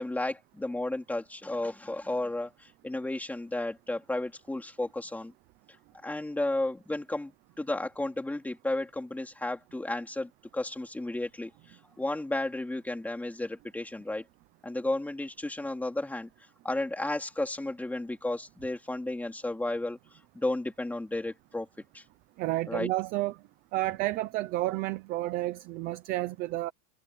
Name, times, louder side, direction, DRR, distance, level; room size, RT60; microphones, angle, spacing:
voice 1, 0.0-5.3 6.0-14.2 14.6-16.3 16.6-20.0 20.3-21.7 21.9-22.0 22.7-22.9, left 2 dB, 5° left, 3.1 m, -33 dB
voice 2, 22.4-23.4 23.7-26.7, right 17 dB, 20° right, 0.6 m, -31 dB
supercardioid pair, 175°, 45 cm